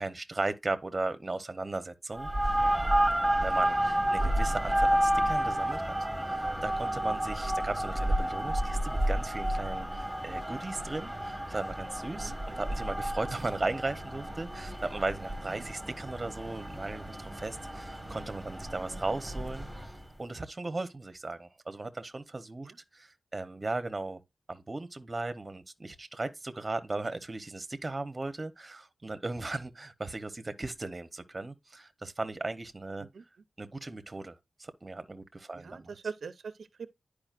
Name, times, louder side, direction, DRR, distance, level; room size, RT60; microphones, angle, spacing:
voice 1, 0.0-2.3 3.3-19.7 20.2-24.2 24.5-33.1 33.6-35.9, right 2 dB, 25° right, 0.8 m, -37 dB
sound 1, 2.1-20.0, right 1 dB, ahead, 1.5 m, -31 dB
voice 2, 12.1-12.6 15.4-15.6 22.6-22.8 33.0-33.2 35.5-36.9, right 5 dB, 85° right, 0.5 m, -43 dB
10.5 x 4.9 x 2.5 m
wide cardioid pair, 135°, 0 cm